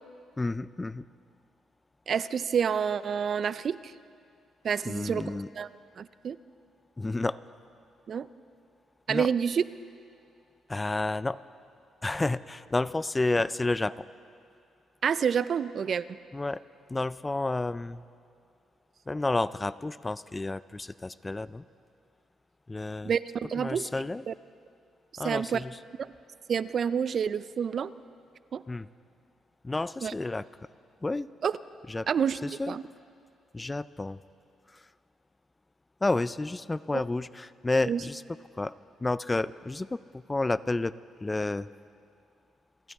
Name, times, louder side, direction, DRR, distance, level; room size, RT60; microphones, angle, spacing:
voice 1, 0.4-1.0 4.8-5.5 7.0-7.4 9.1-9.3 10.7-11.4 12.0-14.0 16.3-16.6 16.9-18.0 19.1-21.6 22.7-23.1 23.6-24.2 25.2-25.8 28.7-28.9 29.6-30.5 31.0-31.3 31.9-32.1 32.4-32.8 33.5-34.2 36.0-38.2 38.6-38.7 39.0-40.0 40.3-40.9 41.2-41.7, left 2 dB, 20° left, 17 dB, 0.3 m, -30 dB
voice 2, 2.1-3.9 4.6-5.7 6.0-6.4 8.1-8.3 9.1-9.6 15.0-16.1 23.0-23.9 24.3-24.4 25.1-25.6 26.0-26.1 26.5-27.9 28.5-28.6 30.0-30.1 31.4-31.6 32.1-32.4 32.7-32.8 36.9-37.0 37.9-38.0, right 7 dB, 50° right, 16 dB, 0.4 m, -28 dB
28.5 x 13.5 x 3.5 m, 2.4 s
cardioid pair, 90°, 0 cm